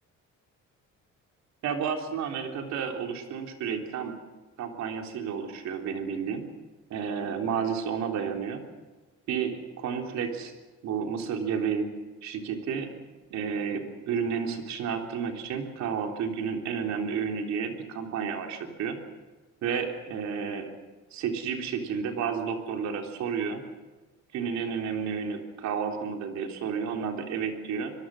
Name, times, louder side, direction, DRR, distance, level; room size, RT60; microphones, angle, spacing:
voice 1, 1.6-4.1 4.6-6.4 6.9-8.6 9.3-10.5 10.8-11.9 12.2-13.0 13.3-19.0 19.6-20.7 21.1-23.6 24.3-27.9, right 6 dB, 60° right, 3 dB, 3.6 m, -31 dB
25.0 x 22.5 x 6.4 m, 1.2 s
cardioid pair, 170°, 31 cm